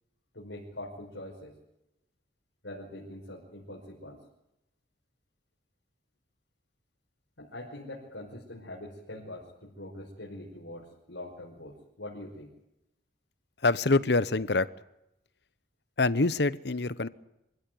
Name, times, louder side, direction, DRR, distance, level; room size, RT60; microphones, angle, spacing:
voice 1, 0.3-1.5 2.6-4.2 7.4-12.5, left 1 dB, 85° left, 5.6 m, -43 dB
voice 2, 13.6-14.7 16.0-17.1, left 3 dB, 65° left, 0.9 m, -25 dB
26.5 x 16.0 x 9.5 m
head